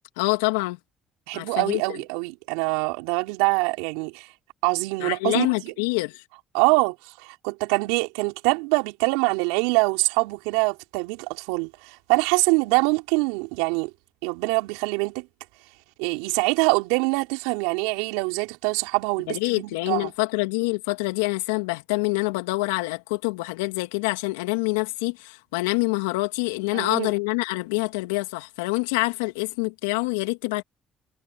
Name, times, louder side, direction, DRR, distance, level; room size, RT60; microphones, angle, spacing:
voice 1, 0.2-0.8 1.3-2.0 5.0-6.2 19.3-30.6, left 25 dB, 85° left, 2.6 m, -26 dB
voice 2, 1.3-4.3 4.6-5.7 6.5-13.9 14.2-15.3 16.0-20.1 26.7-27.1, right 28 dB, 80° right, 4.9 m, -24 dB
hypercardioid pair, 50°, 0 cm